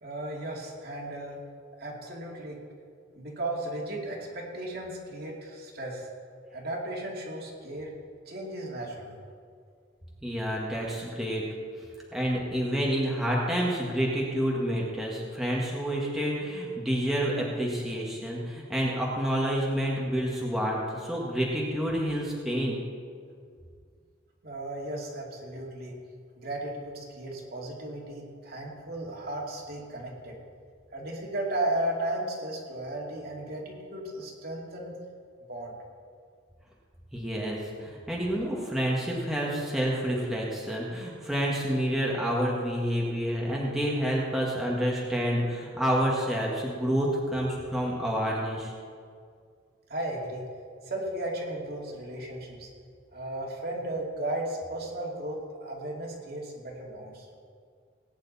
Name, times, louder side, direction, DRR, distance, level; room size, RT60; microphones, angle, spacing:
voice 1, 0.0-1.4 1.8-2.6 3.1-6.1 6.5-7.9 8.3-9.2 24.4-25.9 26.4-30.4 30.9-34.9 35.5-35.8 49.9-50.4 50.8-52.7 53.1-57.3, right 1 dB, 50° right, -2 dB, 2.5 m, -35 dB
voice 2, 10.2-11.4 12.1-22.8 37.1-48.7, equal, ahead, -4 dB, 1.8 m, -28 dB
19.5 x 9.6 x 4.2 m, 2.1 s
head